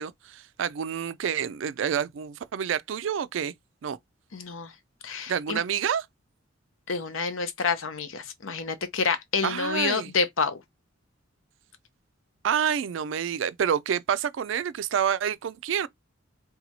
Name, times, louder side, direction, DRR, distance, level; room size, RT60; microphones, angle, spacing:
voice 1, 0.0-3.5 3.8-4.0 5.3-6.1 9.4-10.1 12.4-15.9, right 8 dB, 65° right, 0.3 m, -28 dB
voice 2, 4.3-4.7 5.0-5.6 6.9-10.6, left 5 dB, 90° left, 0.7 m, -28 dB
2.8 x 2.3 x 4.0 m
head